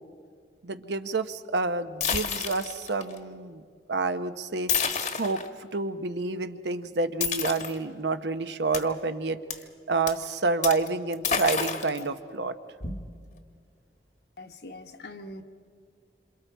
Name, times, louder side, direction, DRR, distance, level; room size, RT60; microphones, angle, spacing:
voice 1, 0.6-3.6 3.9-4.7 5.2-9.4 9.9-12.5, right 3 dB, 80° right, 10 dB, 0.9 m, -29 dB
sound 1, 2.0-3.2 4.7-5.5 7.2-7.8 8.7-8.8 9.5-9.6 10.1-10.2 10.6-10.9 11.1-12.0 12.8-13.4, left 6 dB, 45° left, 1.2 m, -29 dB
voice 2, 14.4-15.4, left 1 dB, 70° left, 5 dB, 1.3 m, -42 dB
27.5 x 26.5 x 4.6 m, 2.2 s
head